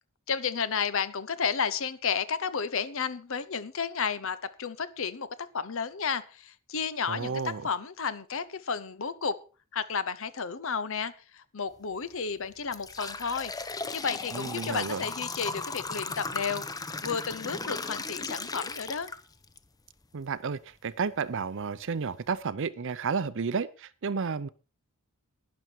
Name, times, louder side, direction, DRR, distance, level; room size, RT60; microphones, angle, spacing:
voice 1, 0.3-9.4 9.7-13.5 13.9-19.1, left 6 dB, 70° left, 0.9 m, -32 dB
voice 2, 7.1-7.7 14.3-15.1 20.1-24.5, right 5 dB, 60° right, 0.6 m, -32 dB
sound 1, 11.8-12.0 12.4-19.6 20.0-20.1 21.0-21.1 21.6-21.7 22.1-22.4, left 3 dB, 20° left, 0.7 m, -37 dB
12.5 x 10.5 x 4.5 m
head